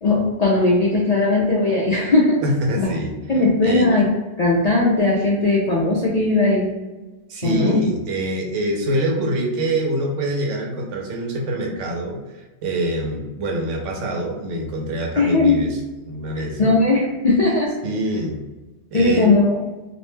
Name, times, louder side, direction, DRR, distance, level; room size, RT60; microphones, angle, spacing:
voice 1, 0.0-2.4 2.8-2.9 3.3-4.1 4.4-6.7 7.4-7.8 15.2-15.7 16.4-17.7 18.9-19.6, left 2 dB, 60° left, -5 dB, 0.4 m, -18 dB
voice 2, 2.4-3.1 3.6-3.9 7.3-12.2 12.6-15.8 16.1-16.6 17.8-18.4 18.9-19.4, right 1 dB, 85° right, 1 dB, 1.0 m, -24 dB
2.5 x 2.1 x 3.1 m, 1.2 s
omnidirectional pair, 1.2 m